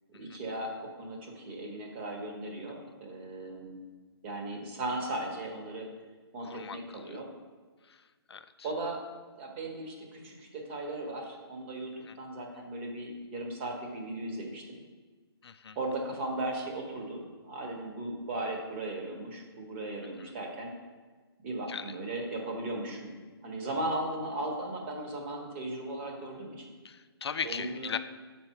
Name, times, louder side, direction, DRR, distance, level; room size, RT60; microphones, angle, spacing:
voice 1, 0.1-3.8 4.2-5.9 6.3-7.3 8.6-9.0 9.4-14.8 15.7-20.7 21.4-26.7 27.4-27.9, right 2 dB, 25° right, 1 dB, 1.3 m, -37 dB
voice 2, 6.4-7.2 7.9-8.0 8.3-8.5 12.1-12.2 15.4-15.8 20.2-20.3 21.7-21.9 26.8-28.0, left 6 dB, 75° left, 12 dB, 0.4 m, -38 dB
6.4 x 4.4 x 5.7 m, 1.4 s
hypercardioid pair, 150°, 14 cm